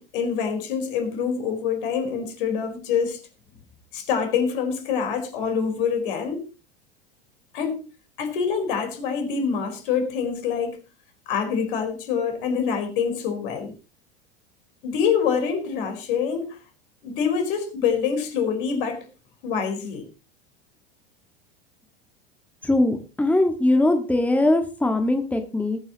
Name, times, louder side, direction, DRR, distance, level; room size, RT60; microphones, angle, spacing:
voice 1, 0.0-3.2 3.9-6.4 7.5-7.9 8.2-10.8 11.3-13.7 14.8-16.6 17.0-19.1 19.4-20.0, left 6 dB, 60° left, 4.4 m, -25 dB
voice 2, 22.6-25.8, left 2 dB, 5° left, 1.7 m, -21 dB
20.0 x 9.5 x 3.0 m
figure-of-eight pair, 85°, 30 cm